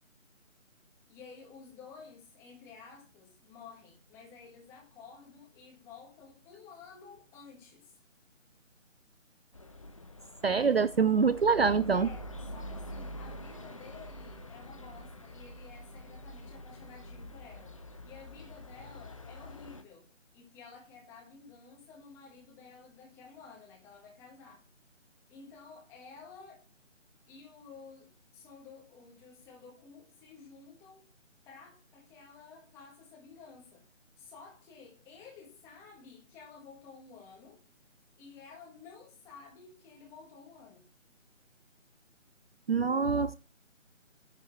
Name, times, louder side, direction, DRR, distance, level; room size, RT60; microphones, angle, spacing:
voice 1, 1.1-7.9 11.9-17.8 18.0-24.6 25.3-26.6 27.3-31.1 31.4-33.9 34.2-37.6 38.2-40.9, left 5 dB, 5° left, 1.6 m, -52 dB
sound 1, 9.5-19.8, equal, 25° left, 0.7 m, -46 dB
voice 2, 10.4-12.1 42.7-43.3, right 5 dB, 55° right, 0.5 m, -25 dB
10.5 x 4.7 x 7.8 m
figure-of-eight pair, 160°, 38 cm